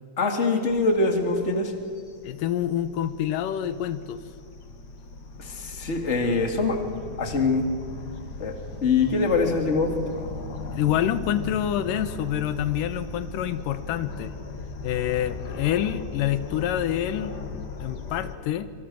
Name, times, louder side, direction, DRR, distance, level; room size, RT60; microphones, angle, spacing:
voice 1, 0.2-1.7 5.4-6.8 7.2-7.7 8.4-8.5 8.8-10.0, left 3 dB, 25° left, 4 dB, 2.3 m, -23 dB
sound 1, 0.7-18.3, left 3 dB, 40° left, 1.6 m, -38 dB
voice 2, 2.2-4.2 10.7-14.3 14.8-17.3 17.8-18.7, left 10 dB, 85° left, 12 dB, 2.6 m, -27 dB
26.0 x 25.5 x 6.4 m, 2.3 s
omnidirectional pair, 3.7 m